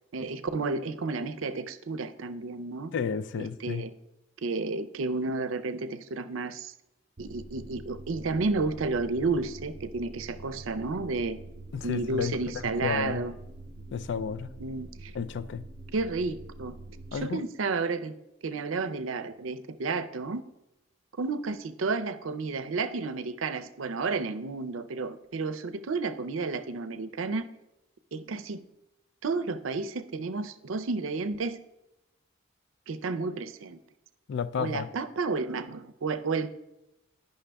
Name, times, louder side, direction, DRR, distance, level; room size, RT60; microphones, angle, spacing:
voice 1, 0.1-2.9 3.4-3.9 4.4-6.7 7.2-11.4 11.8-13.3 14.6-15.1 15.9-16.8 17.1-18.1 18.4-20.4 21.2-27.5 28.1-28.6 29.2-31.6 32.9-33.8 34.6-36.5, right 3 dB, 75° right, 0.5 m, -31 dB
voice 2, 2.9-3.8 11.7-12.4 12.8-13.2 13.9-14.5 15.1-15.6 17.1-17.4 34.3-34.9, left 6 dB, 60° left, 0.4 m, -32 dB
sound 1, 7.2-17.2, right 2 dB, 35° right, 0.6 m, -45 dB
10.0 x 5.7 x 3.4 m
head